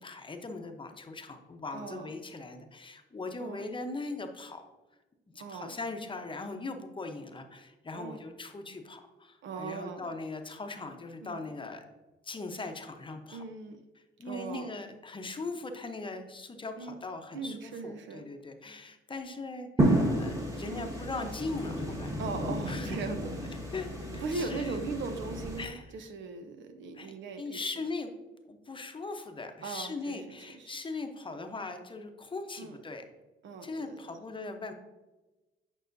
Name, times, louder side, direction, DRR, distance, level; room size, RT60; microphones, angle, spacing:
voice 1, 0.0-4.7 5.3-11.8 12.2-13.4 14.2-22.1 22.7-23.1 23.7-24.8 25.6-25.9 26.9-27.1 27.4-28.1 28.5-33.0 33.6-34.7, left 3 dB, 25° left, 5 dB, 0.8 m, -40 dB
voice 2, 1.7-2.1 3.4-3.7 5.4-5.8 7.9-8.2 9.4-10.1 11.2-11.5 13.3-13.8 14.2-14.7 16.8-17.0 17.3-18.3 20.7-20.9 22.2-23.3 24.2-27.6 29.6-30.7 32.6-32.7 33.4-34.2, right 4 dB, 70° right, 8 dB, 0.8 m, -39 dB
sound 1, 19.8-25.6, right 1 dB, 15° right, 1.5 m, -31 dB
9.1 x 5.5 x 2.6 m, 1.1 s
cardioid pair, 90°, 20 cm